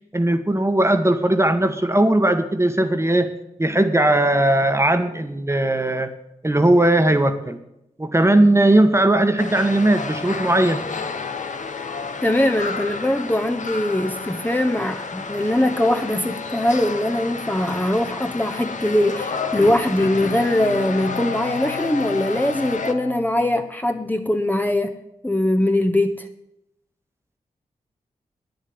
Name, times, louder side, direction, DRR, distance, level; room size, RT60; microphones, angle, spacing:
voice 1, 0.1-3.3 3.6-6.1 6.4-7.6 8.0-10.8, right 1 dB, 20° right, 8 dB, 1.3 m, -18 dB
sound 1, 9.4-22.9, left 4 dB, 55° left, 1.2 m, -31 dB
voice 2, 12.2-25.0 25.2-26.3, left 1 dB, 10° left, 5 dB, 1.1 m, -21 dB
Bowed string instrument, 19.6-24.1 24.5-24.6, left 6 dB, 85° left, 1.1 m, -34 dB
9.6 x 7.9 x 8.6 m, 0.84 s
cardioid pair, 40°, 15 cm